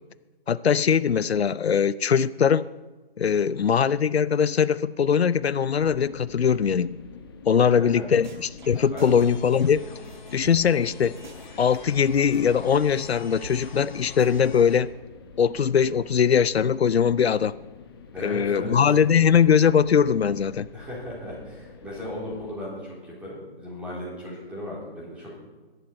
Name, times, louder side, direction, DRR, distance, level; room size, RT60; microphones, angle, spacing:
voice 1, 0.5-2.6 3.2-6.9 7.5-9.8 10.3-11.1 11.6-14.9 15.4-17.5 18.2-20.7, left 7 dB, 90° left, 17 dB, 0.6 m, -21 dB
sound 1, 5.8-22.5, left 5 dB, 25° left, 1.0 m, -47 dB
voice 2, 7.6-8.0 8.9-9.0 18.1-18.8 20.7-25.4, left 1 dB, 5° right, -6 dB, 3.5 m, -36 dB
sound 2, 7.9-8.0 8.2-10.8 11.2-12.4 12.7-12.8 13.1-13.2 13.4-13.5 13.8-13.9 14.2-14.3, right 3 dB, 50° right, 2.0 m, -44 dB
sound 3, 9.0-14.8, left 4 dB, 50° left, 2.2 m, -45 dB
22.5 x 11.0 x 4.3 m, 1.3 s
figure-of-eight pair, 155°, 31 cm